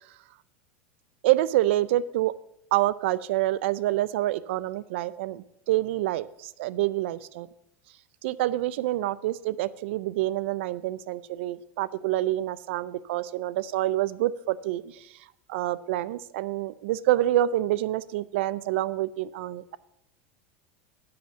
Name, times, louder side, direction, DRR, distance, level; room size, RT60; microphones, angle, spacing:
voice 1, 1.2-2.3 2.7-7.5 8.2-15.1 15.5-19.8, right 14 dB, 75° right, 18 dB, 0.4 m, -27 dB
7.8 x 6.6 x 7.0 m, 0.82 s
supercardioid pair, 135°, 7 cm